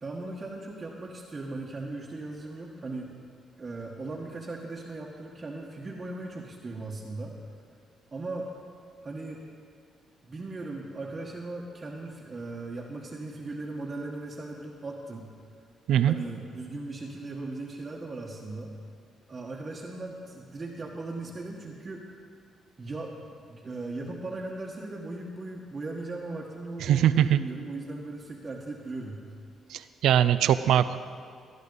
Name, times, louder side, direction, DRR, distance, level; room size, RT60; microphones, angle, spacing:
voice 1, 0.0-3.1 3.6-7.3 8.1-8.5 9.0-9.4 10.2-15.3 16.0-18.7 19.3-22.0 22.8-29.2, right 2 dB, 30° right, -4 dB, 1.3 m, -38 dB
voice 2, 26.8-27.4 29.7-31.0, right 10 dB, 80° right, 14 dB, 0.4 m, -22 dB
17.5 x 11.0 x 4.0 m, 2.1 s
cardioid pair, 90°, 0 cm